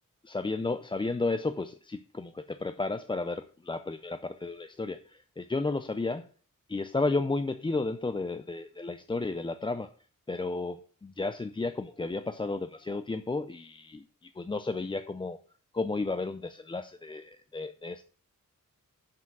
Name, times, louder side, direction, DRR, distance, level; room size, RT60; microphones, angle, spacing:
voice 1, 0.2-6.3 6.7-9.9 10.3-15.4 15.7-18.0, left 3 dB, 15° left, 10 dB, 0.3 m, -33 dB
7.1 x 6.1 x 7.3 m, 0.44 s
wide cardioid pair, 160°, 32 cm